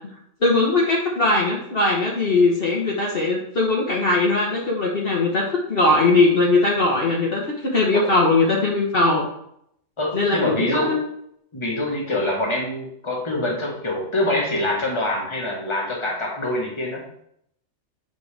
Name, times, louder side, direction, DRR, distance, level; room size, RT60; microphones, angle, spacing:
voice 1, 0.4-9.3 10.1-11.0, left 2 dB, 50° left, -3 dB, 1.3 m, -20 dB
voice 2, 10.0-11.0 11.5-17.0, left 1 dB, 25° left, -2 dB, 1.5 m, -25 dB
8.1 x 4.4 x 3.3 m, 0.72 s
omnidirectional pair, 1.3 m